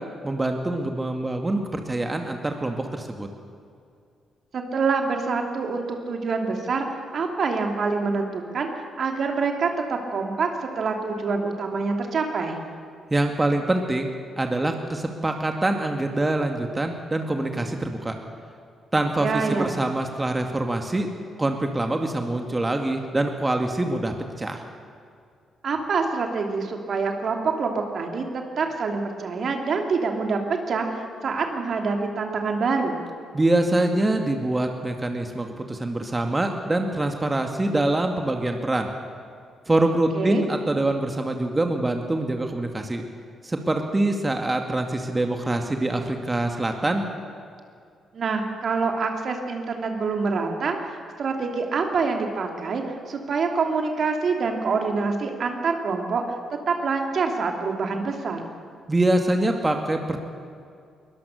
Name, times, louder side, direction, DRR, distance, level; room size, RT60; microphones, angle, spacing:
voice 1, 0.2-3.3 13.1-18.2 18.9-21.1 21.4-24.6 33.3-38.9 39.7-43.0 43.4-47.0 58.9-60.2, right 2 dB, 25° right, 4 dB, 2.2 m, -25 dB
voice 2, 4.5-6.9 7.1-8.7 9.0-10.5 10.7-12.6 19.2-19.8 25.6-28.2 28.6-30.4 30.7-33.0 40.1-40.4 48.1-56.4 56.7-58.4, right 4 dB, 55° right, 3 dB, 2.9 m, -26 dB
22.5 x 20.5 x 6.7 m, 2.3 s
hypercardioid pair, 45°, 0 cm